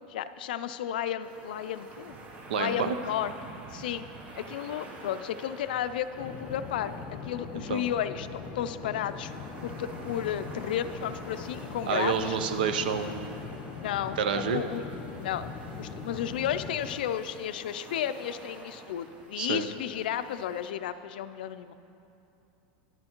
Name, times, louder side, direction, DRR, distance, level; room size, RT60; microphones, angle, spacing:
voice 1, 0.1-2.1 2.5-3.3 3.7-4.1 4.4-9.3 9.6-12.4 13.8-14.8 15.2-21.7, left 10 dB, 85° left, 12 dB, 0.3 m, -33 dB
sound 1, 1.2-20.7, right 2 dB, 30° right, 0.8 m, -48 dB
voice 2, 2.5-2.9 7.7-7.8 11.9-13.4 14.2-14.6 19.4-19.6, right 6 dB, 90° right, 9 dB, 0.6 m, -28 dB
sound 2, 6.2-17.0, left 5 dB, 45° left, 0.8 m, -41 dB
11.0 x 8.7 x 2.9 m, 2.8 s
supercardioid pair, 145°, 5 cm